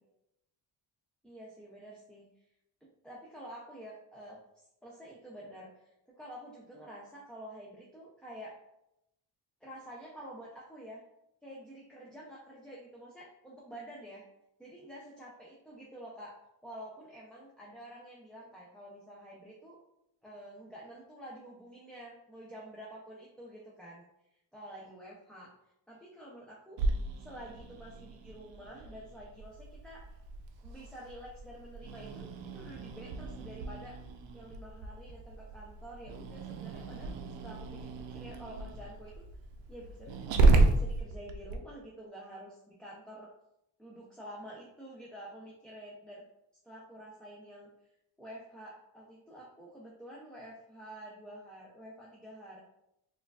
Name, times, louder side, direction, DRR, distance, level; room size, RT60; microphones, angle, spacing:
voice 1, 1.2-2.5 2.8-4.4 4.8-8.6 9.6-11.0 11.4-14.2 14.6-19.8 20.2-24.0 24.3-25.5 25.9-26.8 27.2-30.0 30.6-34.0 34.3-37.2 37.4-39.2 39.7-43.3 43.8-46.2 46.6-47.7 48.2-52.6, right 1 dB, ahead, -5 dB, 0.4 m, -49 dB
Growling, 26.8-41.6, right 3 dB, 80° right, 0.6 m, -32 dB
4.3 x 2.5 x 2.3 m, 0.82 s
cardioid pair, 120°, 44 cm